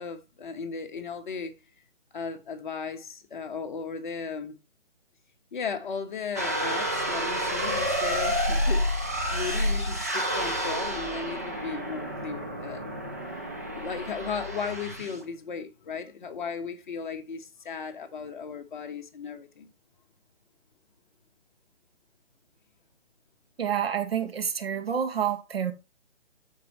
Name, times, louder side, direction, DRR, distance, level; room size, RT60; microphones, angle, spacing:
voice 1, 0.0-1.6 2.1-4.6 5.5-8.9 9.3-12.9 13.4-19.7, left 5 dB, 40° left, 1.2 m, -36 dB
sound 1, 6.4-15.2, equal, 15° right, 0.5 m, -29 dB
voice 2, 23.6-25.7, right 8 dB, 55° right, 1.7 m, -28 dB
13.0 x 4.6 x 3.0 m
hypercardioid pair, 165°, 36 cm